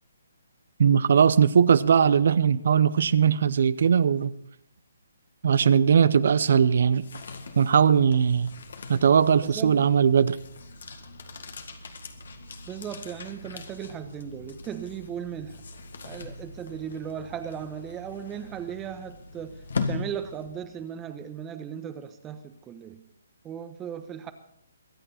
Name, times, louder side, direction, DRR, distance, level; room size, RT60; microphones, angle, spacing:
voice 1, 0.8-4.3 5.4-7.0 7.6-8.5 8.9-10.4, right 7 dB, 60° right, 0.7 m, -20 dB
sound 1, 6.8-20.8, left 3 dB, 65° left, 1.9 m, -40 dB
voice 2, 9.4-9.9 12.6-15.6 16.0-23.0 23.4-24.3, right 8 dB, 15° right, 1.1 m, -37 dB
23.0 x 9.0 x 4.3 m
figure-of-eight pair, 145°, 0 cm